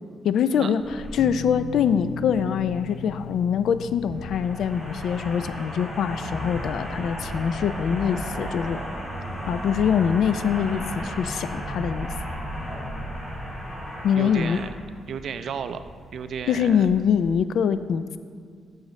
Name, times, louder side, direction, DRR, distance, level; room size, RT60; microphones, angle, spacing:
voice 1, 0.2-8.8 9.5-12.1 14.0-14.6 16.5-18.2, left 8 dB, 70° left, 12 dB, 0.3 m, -24 dB
sound 1, 0.8-17.4, equal, 15° left, 1.7 m, -35 dB
sound 2, 1.2-13.4 13.7-13.9 15.6-15.7, left 3 dB, 5° right, 0.5 m, -41 dB
voice 2, 14.2-14.7 15.1-15.8 16.1-16.9, right 7 dB, 60° right, 10 dB, 0.4 m, -33 dB
13.0 x 6.4 x 3.2 m, 2.1 s
cardioid pair, 155°, 0 cm